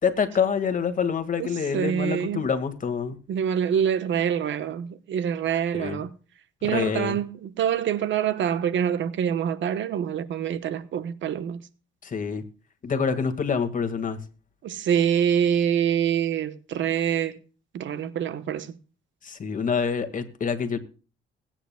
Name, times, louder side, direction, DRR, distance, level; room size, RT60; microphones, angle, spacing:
voice 1, 0.0-3.2 5.7-6.0 6.6-7.2 12.0-12.4 12.8-14.2 19.2-20.8, left 6 dB, 40° left, 1.8 m, -26 dB
voice 2, 1.7-2.5 3.3-6.2 6.6-11.6 14.6-17.4 17.7-18.7, right 9 dB, 70° right, 1.1 m, -25 dB
21.0 x 9.1 x 2.2 m
cardioid pair, 90°, 20 cm